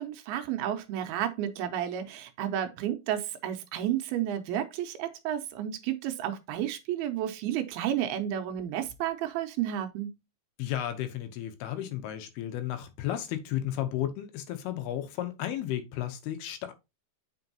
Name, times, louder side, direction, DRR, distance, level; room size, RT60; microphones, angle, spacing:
voice 1, 0.0-10.1, right 11 dB, 85° right, 2.5 m, -32 dB
voice 2, 10.6-16.7, left 12 dB, 80° left, 2.7 m, -33 dB
7.8 x 5.3 x 2.8 m
omnidirectional pair, 4.6 m